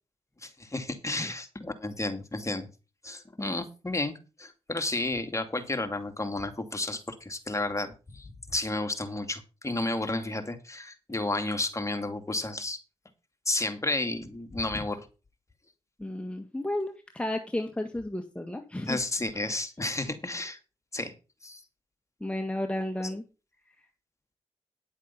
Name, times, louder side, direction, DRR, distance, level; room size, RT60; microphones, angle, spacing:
voice 1, 0.4-2.7 3.0-12.8 13.5-15.1 18.9-20.6 20.9-21.1 21.4-21.6, left 2 dB, 25° left, 6 dB, 2.4 m, -32 dB
voice 2, 16.0-19.0 22.2-23.2, left 1 dB, 10° left, 5 dB, 1.7 m, -33 dB
10.5 x 7.3 x 5.5 m, 0.32 s
supercardioid pair, 45°, 12 cm